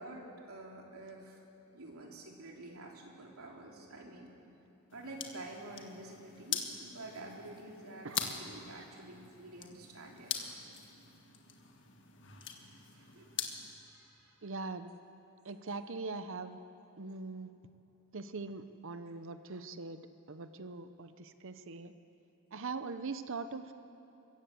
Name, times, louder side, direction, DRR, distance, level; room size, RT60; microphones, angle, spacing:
voice 1, 0.0-1.5 1.7-4.3 4.9-10.4 12.4-13.4 13.8-14.5, right 2 dB, 80° right, 0 dB, 3.3 m, -49 dB
sound 1, 4.9-13.7, left 8 dB, 55° left, 1.7 m, -43 dB
voice 2, 14.4-14.9 15.4-16.6 17.0-17.5 18.1-20.0 20.3-21.9 22.5-23.7, right 3 dB, 60° right, 10 dB, 0.8 m, -41 dB
25.0 x 15.0 x 7.8 m, 3.0 s
head